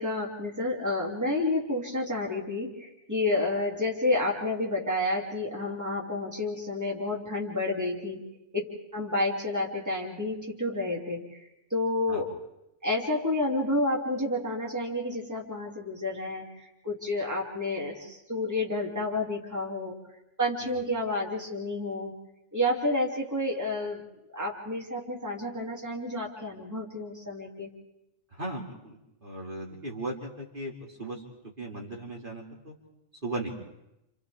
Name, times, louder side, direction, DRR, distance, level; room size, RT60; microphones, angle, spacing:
voice 1, 0.0-8.2 8.5-12.3 12.8-20.0 20.4-22.1 22.5-24.0 24.3-27.7, left 2 dB, 15° right, -2 dB, 2.9 m, -30 dB
voice 2, 28.3-32.7 33.2-33.5, right 2 dB, 45° right, -2 dB, 2.7 m, -37 dB
29.0 x 28.5 x 3.6 m, 0.87 s
omnidirectional pair, 1.2 m